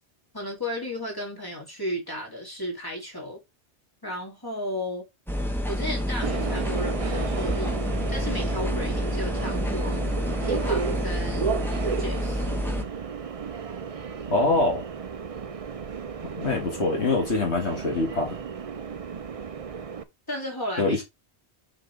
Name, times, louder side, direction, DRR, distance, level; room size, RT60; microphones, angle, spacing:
voice 1, 0.3-3.4 4.0-5.0 5.7-7.8 8.1-10.1 10.4-11.7 12.0-12.5 20.3-21.0, left 1 dB, 20° left, 2.7 m, -34 dB
Kitchen ambience, 5.3-12.8, equal, ahead, 1.1 m, -28 dB
Subway metro underground, 6.2-20.0, right 6 dB, 40° right, 0.6 m, -33 dB
voice 2, 14.3-14.8 16.3-18.3 20.8-21.0, left 2 dB, 75° left, 2.2 m, -24 dB
7.2 x 5.2 x 3.4 m
omnidirectional pair, 1.1 m